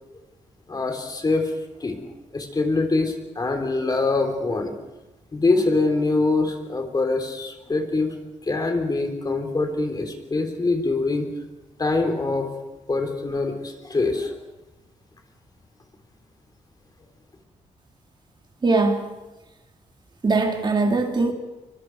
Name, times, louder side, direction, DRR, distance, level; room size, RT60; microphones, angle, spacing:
voice 1, 0.7-1.5 1.8-2.0 2.3-4.7 5.3-8.1 8.5-11.3 11.8-12.5 12.9-14.4, left 3 dB, 30° left, 4 dB, 3.6 m, -24 dB
voice 2, 18.6-19.1 20.2-21.3, right 3 dB, 35° right, 3 dB, 2.7 m, -21 dB
25.5 x 24.0 x 4.8 m, 1.0 s
cardioid pair, 105°, 13 cm